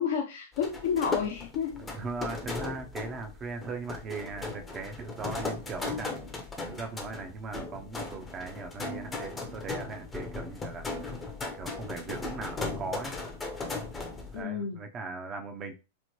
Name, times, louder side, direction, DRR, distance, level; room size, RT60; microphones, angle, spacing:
voice 1, 0.0-1.8 2.7-2.8 14.3-14.8, left 7 dB, 65° left, 0.5 m, -30 dB
sound 1, 0.5-14.4, left 3 dB, 15° left, 0.6 m, -37 dB
voice 2, 1.9-6.1 6.7-10.9 11.6-13.1 14.3-15.8, right 4 dB, 30° right, 0.6 m, -39 dB
3.1 x 2.0 x 3.0 m
hypercardioid pair, 115°, 0 cm